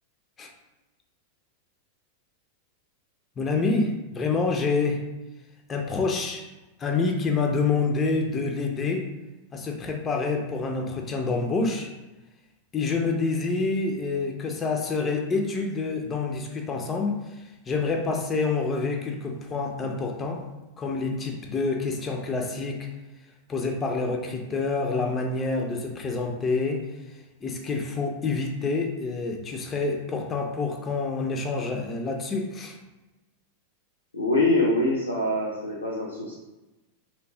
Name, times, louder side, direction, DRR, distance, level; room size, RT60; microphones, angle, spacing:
voice 1, 3.4-5.0 5.7-6.5 6.8-9.1 9.5-11.9 12.7-20.4 20.8-22.9 23.5-32.8, left 4 dB, 20° left, 2 dB, 0.4 m, -27 dB
voice 2, 34.1-36.3, left 2 dB, 80° left, -4 dB, 0.6 m, -24 dB
3.0 x 2.9 x 3.0 m, 1.1 s
figure-of-eight pair, 90°, 0 cm